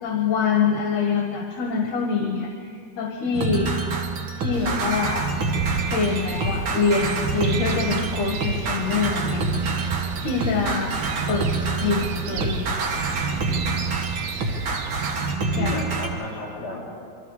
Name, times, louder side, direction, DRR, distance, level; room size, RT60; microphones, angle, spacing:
voice 1, 0.0-3.7 4.4-5.3 5.8-9.4 10.2-11.0 11.3-11.5 11.8-12.9 15.6-15.8, left 5 dB, 65° left, 2 dB, 2.9 m, -25 dB
sound 1, 3.3-16.1, right 3 dB, 45° right, 2.0 m, -27 dB
sound 2, 4.5-15.4, right 6 dB, 65° right, 2.0 m, -33 dB
voice 2, 15.4-16.9, left 2 dB, 25° left, -4 dB, 8.2 m, -32 dB
26.0 x 23.0 x 4.9 m, 2.3 s
omnidirectional pair, 3.9 m